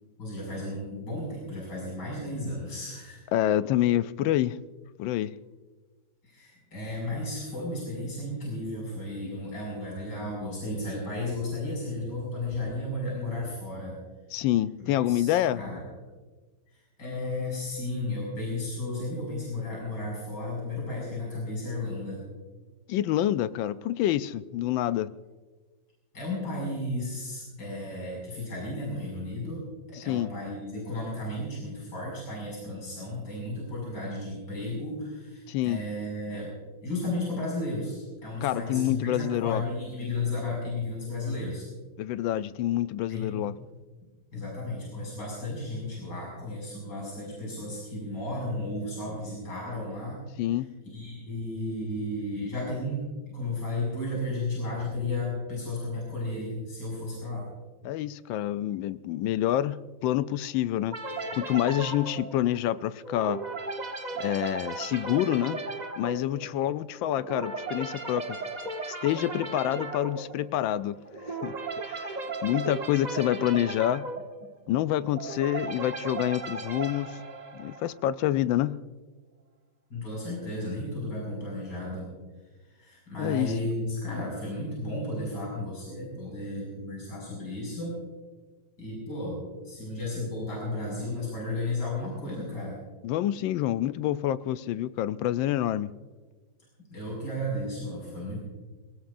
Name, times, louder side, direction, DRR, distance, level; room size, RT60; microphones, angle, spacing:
voice 1, 0.2-3.2 6.2-14.0 14.8-15.8 16.7-22.2 26.1-29.6 29.9-36.6 36.8-41.7 43.1-43.5 44.3-50.2 50.6-50.7 50.9-57.5 79.9-82.1 82.7-88.0 88.8-92.8 96.9-98.4, left 1 dB, 60° left, -4 dB, 6.9 m, -34 dB
voice 2, 3.3-4.6 5.0-5.3 14.3-15.6 22.9-25.1 30.0-30.3 35.5-35.8 38.4-39.6 42.0-43.5 50.4-50.7 57.8-61.0 61.3-63.4 64.2-65.6 66.0-68.4 68.9-70.9 71.3-71.5 71.9-72.2 72.4-74.1 74.7-77.2 77.5-78.8 83.2-83.5 93.0-95.9, left 13 dB, 80° left, 14 dB, 1.3 m, -27 dB
sound 1, 60.9-78.1, right 3 dB, 30° right, 1.0 m, -36 dB
23.5 x 19.0 x 2.6 m, 1.3 s
omnidirectional pair, 2.1 m